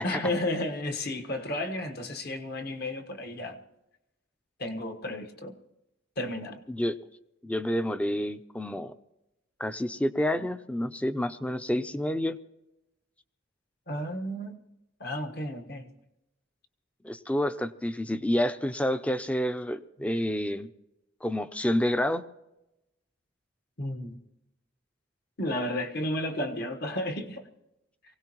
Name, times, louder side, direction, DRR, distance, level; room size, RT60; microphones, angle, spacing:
voice 1, 0.0-3.6 4.6-5.6 6.2-6.6 13.9-14.6 15.0-15.9 23.8-24.2 25.4-27.4, left 1 dB, 55° left, 1.4 m, -32 dB
voice 2, 7.4-8.9 9.6-12.4 17.0-20.7 21.2-22.2, left 1 dB, 5° left, 0.5 m, -29 dB
24.0 x 17.5 x 3.1 m
head